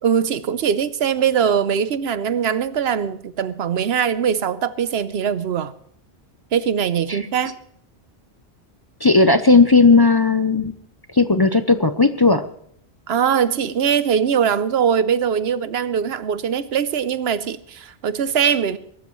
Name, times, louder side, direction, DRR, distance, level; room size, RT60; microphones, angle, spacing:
voice 1, 0.0-5.7 6.5-7.6 13.1-18.8, right 7 dB, 75° right, 1.0 m, -21 dB
voice 2, 9.0-10.7 11.1-12.4, left 3 dB, 25° left, 0.6 m, -15 dB
22.5 x 13.0 x 3.1 m
omnidirectional pair, 1.1 m